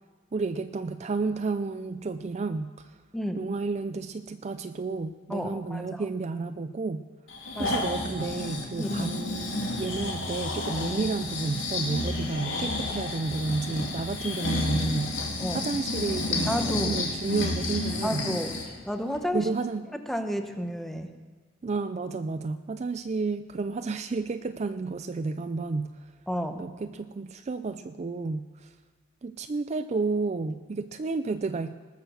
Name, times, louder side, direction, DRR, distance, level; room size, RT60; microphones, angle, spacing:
voice 1, 0.3-3.0 3.4-7.0 7.6-15.2 15.5-16.5 16.8-18.4 19.3-19.8 21.6-26.1 26.6-28.7 29.2-31.7, right 3 dB, 35° right, 11 dB, 0.4 m, -31 dB
voice 2, 5.3-6.0 7.5-7.8 8.8-9.1 15.4-15.6 16.5-17.0 18.0-18.5 18.9-19.5 19.9-21.1 26.3-26.6, equal, ahead, 6 dB, 0.8 m, -31 dB
Breathing, 7.3-18.7 19.1-19.2, left 2 dB, 80° left, 2.9 m, -31 dB
19.5 x 6.6 x 6.6 m, 1.4 s
head